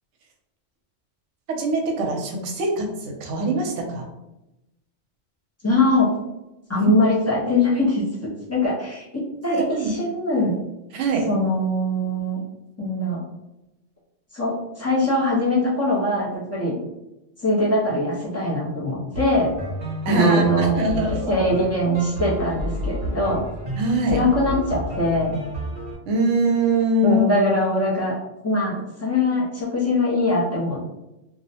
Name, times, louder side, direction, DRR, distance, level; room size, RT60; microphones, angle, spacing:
voice 1, 1.5-4.1 6.7-6.9 9.5-9.9 10.9-11.3 20.1-21.5 23.8-24.2 26.1-27.2, right 2 dB, 80° right, 2 dB, 0.9 m, -23 dB
voice 2, 5.6-6.1 6.7-8.0 8.5-10.5 11.3-12.4 12.8-13.2 14.3-16.8 17.4-19.5 20.1-23.4 24.1-25.4 27.0-28.2 28.4-30.9, left 1 dB, 25° left, -6 dB, 0.3 m, -22 dB
sound 1, 19.1-25.9, equal, 55° right, 0.9 m, -31 dB
2.5 x 2.0 x 2.7 m, 0.92 s
omnidirectional pair, 1.2 m